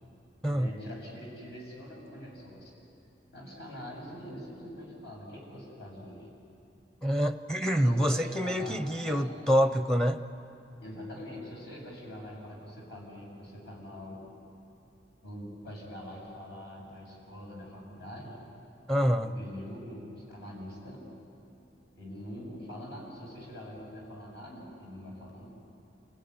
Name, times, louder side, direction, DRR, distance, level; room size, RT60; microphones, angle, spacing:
voice 1, 0.5-2.9 3.3-6.3 7.8-9.5 10.8-14.2 15.2-18.4 19.2-21.1 22.0-25.5, equal, 65° left, -2 dB, 7.4 m, -44 dB
voice 2, 7.0-10.2 18.9-19.3, equal, 5° left, 9 dB, 0.7 m, -26 dB
28.0 x 17.0 x 9.6 m, 2.9 s
head